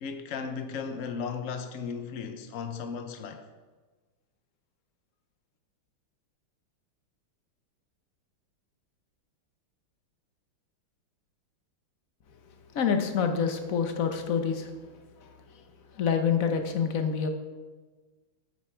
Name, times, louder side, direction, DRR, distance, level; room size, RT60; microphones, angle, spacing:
voice 1, 0.0-3.4, left 6 dB, 85° left, 0.6 m, -35 dB
voice 2, 12.7-14.7 15.2-15.3 15.9-17.3, left 6 dB, 55° left, 1.0 m, -27 dB
9.6 x 8.6 x 4.5 m
omnidirectional pair, 2.4 m